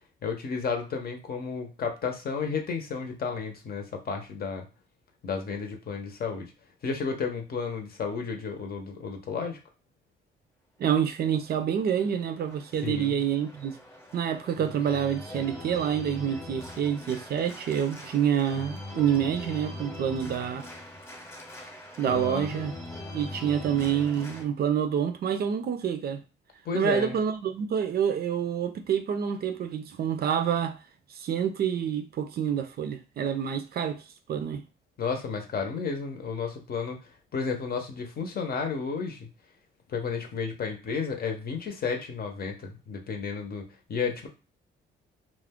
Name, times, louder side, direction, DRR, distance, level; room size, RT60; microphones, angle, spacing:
voice 1, 0.2-4.7 5.2-6.5 6.8-9.6 12.8-13.2 14.5-14.6 22.1-22.5 26.6-27.2 35.0-37.0 37.3-39.3 39.9-43.6 43.9-44.3, left 5 dB, 50° left, 0.7 m, -32 dB
voice 2, 10.8-13.7 14.1-20.7 22.0-22.7 23.1-26.2 26.7-30.8 31.1-34.0 34.3-34.6, right 8 dB, 50° right, 0.4 m, -27 dB
Organ, 11.3-24.4, left 1 dB, 15° left, 0.8 m, -42 dB
2.4 x 2.1 x 3.5 m
cardioid pair, 90°, 20 cm